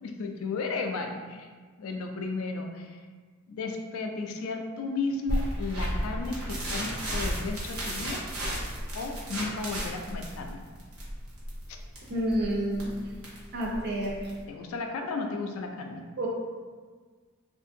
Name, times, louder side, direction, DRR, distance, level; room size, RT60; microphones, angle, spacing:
voice 1, 0.0-1.5 1.8-3.0 3.5-8.2 8.9-10.6 11.7-11.8 14.5-16.0, left 3 dB, 70° left, 4 dB, 0.3 m, -34 dB
sound 1, 5.3-14.4, equal, 80° right, 0.8 m, -34 dB
voice 2, 12.1-13.1 13.5-14.3 16.2-16.3, right 1 dB, 50° right, -2 dB, 0.4 m, -29 dB
2.6 x 2.5 x 2.5 m, 1.5 s
head